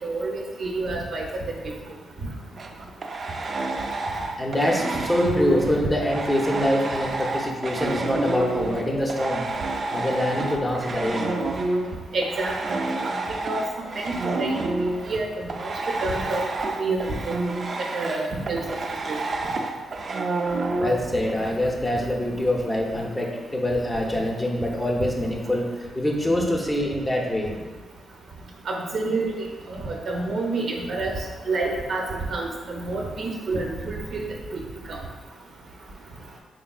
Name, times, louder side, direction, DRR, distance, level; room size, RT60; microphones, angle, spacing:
voice 1, 0.0-1.5 2.2-2.3 5.6-5.7 12.1-12.5 13.0-13.2 13.4-13.6 14.0-14.1 14.4-14.7 15.1-15.3 15.6-15.7 16.0-16.5 16.8-17.4 17.9-18.6 19.1-19.2 28.7-29.3 29.7-31.1 31.5-32.0 32.3-34.3, right 3 dB, 65° right, -1 dB, 0.8 m, -28 dB
sound 1, 2.6-8.8 9.1-21.5, right 2 dB, 45° right, 0.4 m, -29 dB
voice 2, 4.4-9.4 9.9-11.3 20.8-27.5, left 1 dB, 15° left, -1 dB, 0.7 m, -25 dB
4.5 x 3.4 x 2.4 m, 1.3 s
cardioid pair, 80°, 0 cm